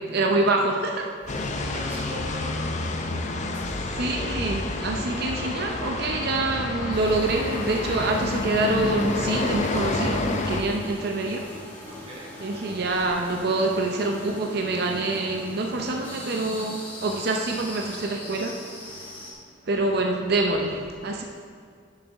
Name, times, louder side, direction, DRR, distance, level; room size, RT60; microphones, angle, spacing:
voice 1, 0.1-1.1 3.9-11.5 12.4-19.4 19.6-21.2, right 2 dB, 55° right, 1 dB, 0.6 m, -26 dB
voice 2, 1.2-3.9 11.9-12.3, equal, 30° right, -4 dB, 1.3 m, -40 dB
sound 1, 1.3-10.6, left 2 dB, 40° left, 0.6 m, -29 dB
sound 2, 6.9-19.3, left 1 dB, 10° left, 1.4 m, -41 dB
10.5 x 6.6 x 3.5 m, 2.1 s
head